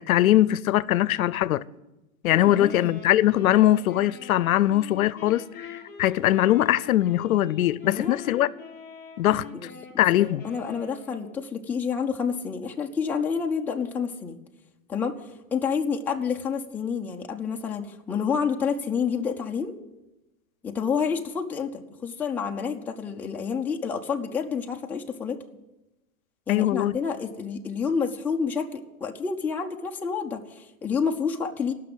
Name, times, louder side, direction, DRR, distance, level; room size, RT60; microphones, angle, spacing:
voice 1, 0.0-1.6 2.2-8.5 9.2-9.4 10.0-10.4 26.5-26.9, left 13 dB, 85° left, 0.6 m, -21 dB
voice 2, 2.3-2.9 7.8-8.2 9.3-9.7 10.2-14.4 14.9-15.2 15.5-19.7 20.6-25.4 26.5-31.7, left 6 dB, 5° left, 0.4 m, -29 dB
Wind instrument woodwind instrument, 2.4-11.4, left 4 dB, 25° left, 4.9 m, -44 dB
16.5 x 6.1 x 9.5 m
hypercardioid pair, 135°, 41 cm